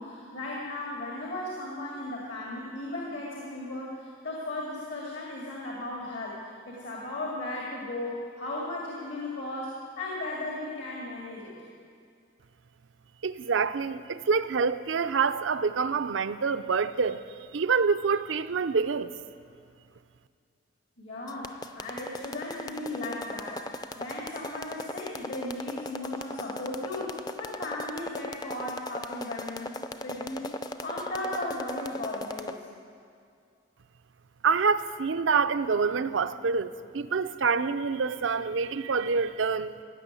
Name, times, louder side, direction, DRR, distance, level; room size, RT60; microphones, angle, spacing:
voice 1, 0.0-11.6 21.0-32.5, left 1 dB, 70° left, 2.4 m, -36 dB
voice 2, 13.2-17.2 17.5-19.1 34.4-39.8, right 5 dB, 85° right, 0.5 m, -26 dB
sound 1, 21.3-32.5, left 2 dB, 20° left, 0.4 m, -37 dB
16.5 x 6.9 x 9.7 m
head